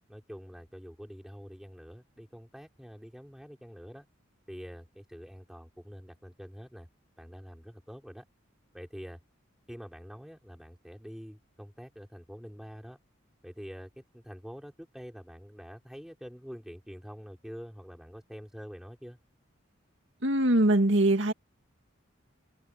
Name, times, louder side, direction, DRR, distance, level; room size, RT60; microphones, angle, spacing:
voice 1, 0.1-4.1 4.5-6.9 7.2-8.2 8.7-9.2 9.7-13.0 13.4-19.2, equal, ahead, 5.3 m, -46 dB
voice 2, 20.2-21.3, right 1 dB, 65° right, 2.4 m, -22 dB
head